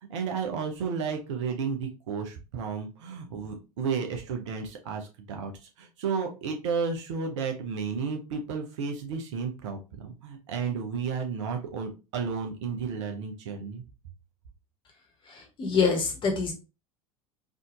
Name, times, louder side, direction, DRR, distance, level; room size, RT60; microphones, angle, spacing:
voice 1, 0.1-13.8, right 5 dB, 55° right, 4 dB, 0.8 m, -32 dB
voice 2, 15.2-16.5, left 5 dB, 25° left, 2 dB, 1.2 m, -26 dB
3.6 x 2.6 x 2.4 m, 0.30 s
figure-of-eight pair, 80°, 18 cm